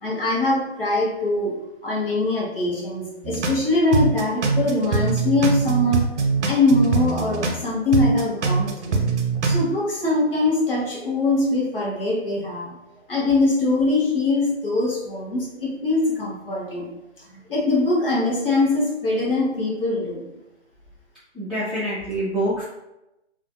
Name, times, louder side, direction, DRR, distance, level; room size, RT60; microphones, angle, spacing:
voice 1, 0.0-1.5 1.8-6.0 6.4-9.0 9.5-12.8 13.1-16.9 17.5-20.2, left 2 dB, 55° left, -3 dB, 0.9 m, -22 dB
sound 1, 3.2-3.6 3.9-7.6 7.9-9.6, right 4 dB, 85° right, 0.6 m, -22 dB
voice 2, 21.3-22.6, right 1 dB, ahead, -15 dB, 0.4 m, -26 dB
2.4 x 2.1 x 2.4 m, 0.91 s
hypercardioid pair, 180°, 34 cm